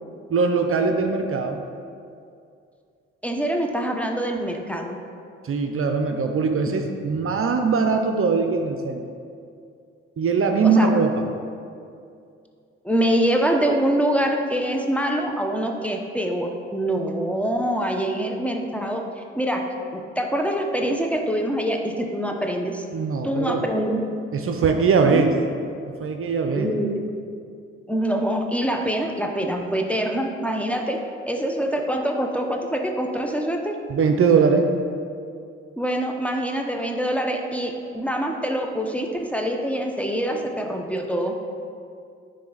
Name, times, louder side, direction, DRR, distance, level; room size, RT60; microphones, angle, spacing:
voice 1, 0.3-1.6 5.4-9.0 10.2-11.2 22.9-23.6 24.3-25.3 26.0-26.7 33.9-34.7, right 5 dB, 45° right, 5 dB, 0.6 m, -21 dB
voice 2, 3.2-5.0 10.6-11.0 12.8-19.6 19.9-22.9 23.2-24.0 25.0-25.3 26.6-27.0 27.9-31.0 31.3-33.7 35.8-41.3, right 1 dB, 5° left, 2 dB, 0.8 m, -25 dB
9.6 x 3.3 x 3.9 m, 2.4 s
supercardioid pair, 55°, 30 cm